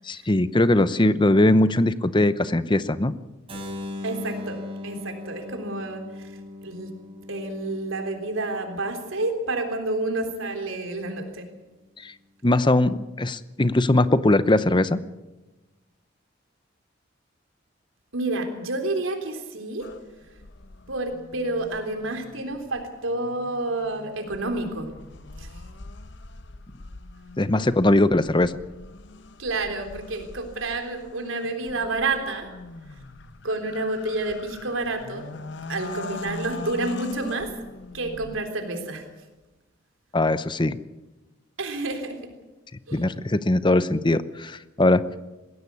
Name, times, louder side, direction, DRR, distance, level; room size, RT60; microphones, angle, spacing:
voice 1, 0.1-3.1 12.0-12.1 12.4-15.0 27.4-28.5 40.1-40.8 42.9-45.0, left 1 dB, 25° left, 14 dB, 0.7 m, -20 dB
Keyboard (musical), 3.5-9.3, left 2 dB, 30° right, 5.0 m, -39 dB
voice 2, 4.0-6.9 7.3-11.5 18.1-19.9 20.9-24.9 25.4-25.5 29.4-32.5 33.4-35.4 35.7-37.5 37.9-39.1 41.6-42.2 42.9-43.2, right 2 dB, 85° right, 4 dB, 3.7 m, -29 dB
sound 1, 19.8-38.4, left 2 dB, 60° left, 0.9 m, -42 dB
20.5 x 16.0 x 8.5 m, 1.1 s
head